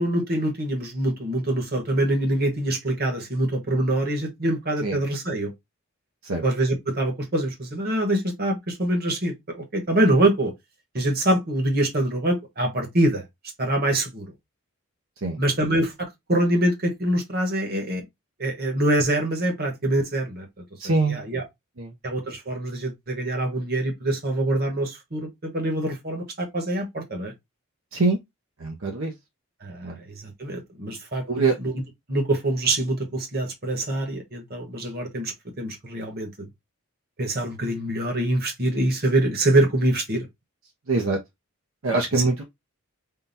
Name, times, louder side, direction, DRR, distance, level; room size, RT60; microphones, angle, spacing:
voice 1, 0.0-5.5 6.4-10.5 10.9-13.2 13.6-14.2 15.4-15.9 16.3-18.0 18.4-20.5 21.1-21.4 22.0-27.3 29.6-29.9 30.2-31.7 32.1-36.5 37.2-40.3, right 1 dB, 45° right, 1.2 m, -24 dB
voice 2, 20.8-21.2 21.8-21.9 27.9-28.2 28.6-29.1 29.8-29.9 31.3-31.6 40.9-41.2 41.8-42.4, right 3 dB, 65° right, 0.7 m, -23 dB
3.8 x 2.3 x 4.0 m
head